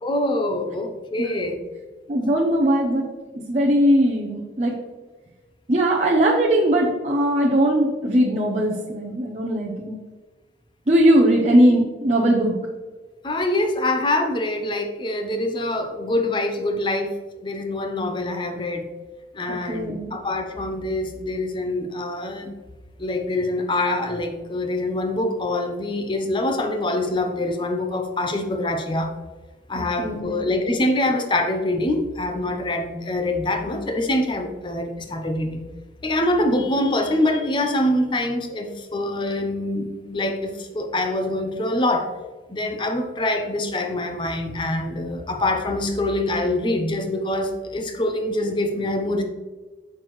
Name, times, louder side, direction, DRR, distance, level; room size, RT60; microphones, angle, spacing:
voice 1, 0.0-1.6 13.2-18.9 19.3-22.5 23.0-29.1 29.7-35.7 36.0-42.1 42.5-49.2, left 1 dB, 25° left, 6 dB, 0.6 m, -25 dB
voice 2, 2.1-3.1 3.5-4.7 5.7-10.0 10.9-12.6 19.5-20.1 29.7-30.4, right 1 dB, 35° right, -3 dB, 0.7 m, -19 dB
6.6 x 6.0 x 3.1 m, 1.3 s
head